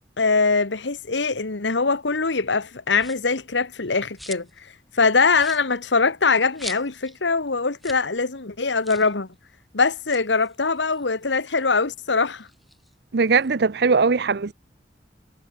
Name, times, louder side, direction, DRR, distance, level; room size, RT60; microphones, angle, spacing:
voice 1, 0.2-4.5 4.9-9.3 9.7-12.5, left 4 dB, 90° left, 1.5 m, -22 dB
sound 1, 2.9-3.4 3.8-4.6 4.9-5.0 5.3-7.2 7.5-7.6 7.8-8.1 8.3-8.4 8.8-9.1 9.9-11.6 12.0-13.5, equal, ahead, 3.8 m, -42 dB
voice 2, 13.1-14.5, right 4 dB, 65° right, 0.7 m, -20 dB
head